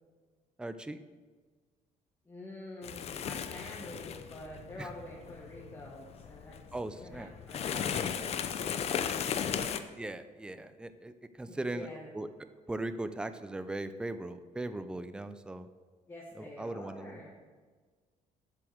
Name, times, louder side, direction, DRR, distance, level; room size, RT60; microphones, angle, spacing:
voice 1, 0.6-1.0 4.8-4.9 6.7-7.3 10.0-11.9 12.1-12.3 12.7-15.7 16.4-17.2, right 2 dB, 5° right, 11 dB, 0.5 m, -39 dB
voice 2, 2.2-6.6 7.0-9.1 9.5-9.7 11.5-12.1 16.1-17.3, left 1 dB, 15° left, -4 dB, 1.7 m, -47 dB
sound 1, 2.8-9.8, left 8 dB, 50° left, 0.6 m, -36 dB
7.7 x 7.6 x 6.4 m, 1.5 s
cardioid pair, 125°, 14 cm